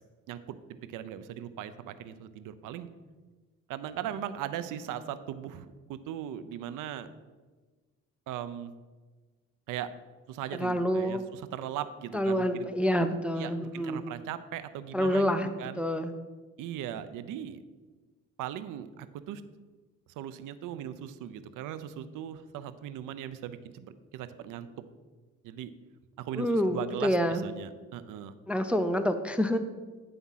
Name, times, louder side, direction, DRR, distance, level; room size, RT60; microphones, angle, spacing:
voice 1, 0.3-2.9 3.7-7.1 8.3-8.7 9.7-9.9 10.3-12.7 13.4-15.3 15.6-15.8 16.6-17.6 18.4-19.4 20.2-24.7 25.4-25.7 26.2-28.3, right 10 dB, 80° right, 12 dB, 0.6 m, -39 dB
voice 2, 10.6-11.2 12.1-14.1 14.9-15.5 15.8-16.1 26.4-27.4 28.5-29.6, equal, 5° right, 8 dB, 0.4 m, -27 dB
9.5 x 3.6 x 5.6 m, 1.3 s
cardioid pair, 100°, 31 cm